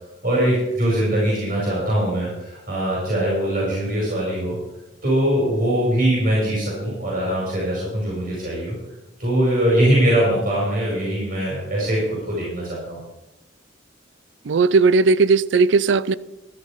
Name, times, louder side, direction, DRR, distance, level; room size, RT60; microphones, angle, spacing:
voice 1, 0.2-4.6 5.0-8.8 9.2-13.0, right 1 dB, 50° right, 5.0 m, -22 dB
voice 2, 14.5-16.1, right 4 dB, 70° right, 0.4 m, -16 dB
12.5 x 10.5 x 5.0 m
head